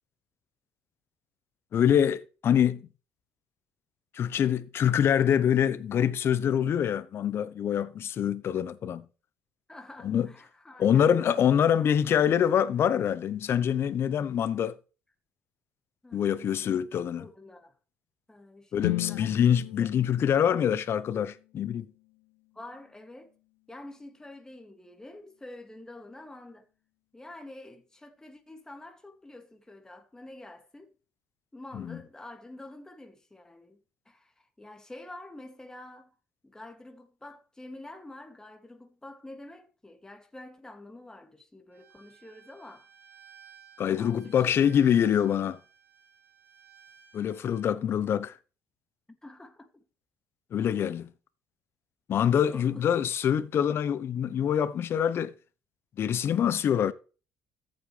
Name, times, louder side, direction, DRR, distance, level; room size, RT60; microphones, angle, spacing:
voice 1, 1.7-2.9 4.1-9.0 10.0-10.3 10.8-14.8 16.1-17.2 18.7-21.9 31.7-32.0 43.8-45.6 47.1-48.4 50.5-51.1 52.1-55.3 56.0-56.9, left 9 dB, 55° left, 1.0 m, -25 dB
voice 2, 9.7-11.4 16.0-16.8 17.1-17.8 18.3-19.4 19.8-19.9 22.5-23.3 23.7-26.7 27.1-31.0 31.5-33.8 34.1-36.2 36.4-42.9 43.9-44.6 49.1-49.8 52.5-52.8 56.4-56.6, left 2 dB, 15° left, 2.5 m, -47 dB
sound 1, 18.8-22.9, left 19 dB, 85° left, 0.5 m, -37 dB
Bowed string instrument, 41.7-47.7, right 8 dB, 50° right, 3.1 m, -56 dB
14.0 x 8.2 x 3.4 m
hypercardioid pair, 65°, 5 cm